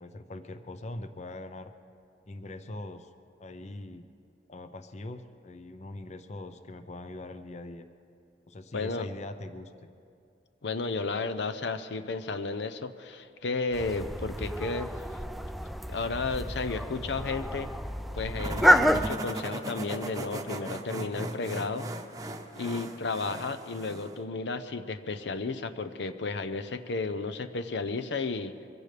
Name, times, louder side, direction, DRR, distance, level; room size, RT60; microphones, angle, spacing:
voice 1, 0.0-1.7 2.3-3.1 3.4-4.1 4.5-7.9 8.5-9.9, left 2 dB, 40° left, 9 dB, 0.6 m, -42 dB
voice 2, 8.7-9.1 10.6-15.0 15.9-17.7 18.1-21.9 22.5-28.5, left 3 dB, 85° left, 10 dB, 0.7 m, -33 dB
sound 1, 13.7-19.1, equal, ahead, 0.3 m, -28 dB
sound 2, 18.4-24.2, right 2 dB, 20° right, 0.8 m, -38 dB
23.5 x 15.5 x 3.4 m, 2.4 s
head